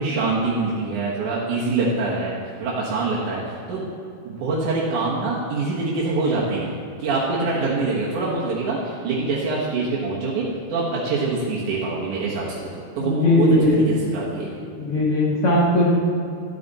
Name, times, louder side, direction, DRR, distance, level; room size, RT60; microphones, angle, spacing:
voice 1, 0.0-2.3 2.6-3.4 3.7-3.9 4.2-6.7 7.0-12.6 13.0-14.6, right 3 dB, 90° right, -6 dB, 2.7 m, -24 dB
voice 2, 13.0-13.8 14.8-15.9, left 1 dB, 90° left, -3 dB, 0.6 m, -18 dB
13.0 x 8.9 x 4.0 m, 2.5 s
omnidirectional pair, 3.4 m